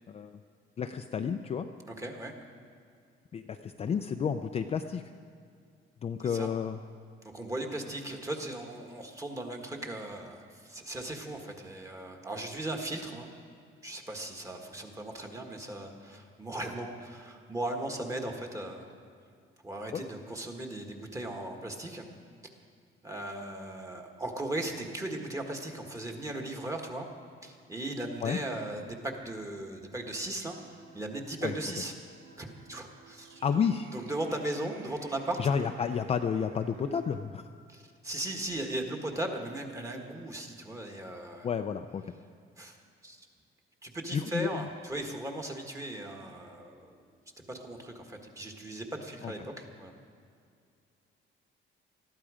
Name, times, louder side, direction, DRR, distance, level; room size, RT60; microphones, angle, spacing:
voice 1, 0.1-0.4 0.8-1.7 3.3-5.0 6.0-6.8 19.9-20.0 28.2-28.4 31.4-31.5 33.4-33.9 35.4-37.5 41.4-42.0 44.1-44.7 49.2-49.3, left 7 dB, 30° left, 6 dB, 0.4 m, -31 dB
voice 2, 2.0-2.3 6.2-6.5 7.2-13.3 13.8-18.8 19.6-22.1 23.0-27.1 27.4-31.9 32.4-33.4 33.9-35.4 37.7-41.5 42.6-42.8 43.0-43.3 43.8-47.0 47.5-49.9, right 1 dB, 15° right, 2 dB, 1.5 m, -37 dB
sound 1, 30.4-37.2, right 6 dB, 85° right, 1.9 m, -55 dB
20.5 x 14.0 x 5.0 m, 2.3 s
cardioid pair, 165°, 21 cm